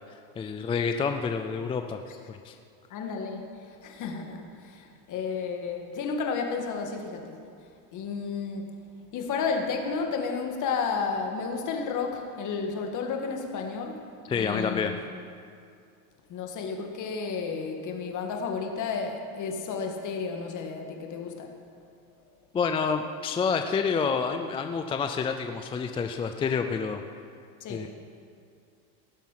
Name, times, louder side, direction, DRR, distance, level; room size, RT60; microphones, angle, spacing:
voice 1, 0.4-2.0 2.3-2.5 14.3-14.9 22.5-27.0 27.7-27.9, left 5 dB, 15° left, 6 dB, 0.3 m, -28 dB
voice 2, 2.9-3.5 3.8-7.4 7.9-8.7 9.1-14.0 14.3-15.0 16.3-21.5 27.6-27.9, left 5 dB, 45° left, 3 dB, 2.0 m, -32 dB
18.0 x 7.3 x 5.8 m, 2.3 s
supercardioid pair, 120°, 44 cm